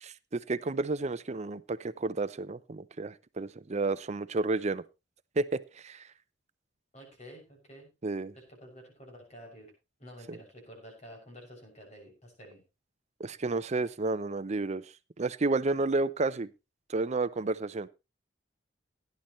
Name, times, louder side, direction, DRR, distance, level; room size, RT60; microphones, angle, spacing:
voice 1, 0.0-4.8 5.4-6.0 8.0-8.3 10.3-10.4 13.2-14.8 15.2-16.5 16.9-17.9, right 3 dB, 35° right, 0.6 m, -31 dB
voice 2, 6.9-7.9 8.3-9.7 10.0-12.6, equal, 40° left, 6.5 m, -50 dB
17.0 x 10.5 x 3.1 m
head